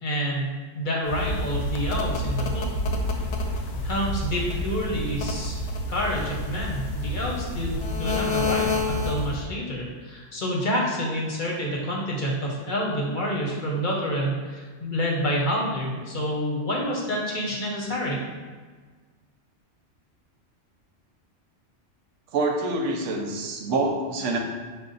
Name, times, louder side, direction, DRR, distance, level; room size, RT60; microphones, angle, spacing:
voice 1, 0.0-2.7 3.8-5.6 5.9-18.2, equal, 50° left, -3 dB, 0.8 m, -28 dB
sound 1, 1.1-9.4, left 2 dB, 75° left, 0.9 m, -28 dB
voice 2, 22.3-24.4, right 2 dB, 85° right, 2 dB, 1.0 m, -26 dB
5.3 x 2.1 x 3.8 m, 1.4 s
omnidirectional pair, 1.3 m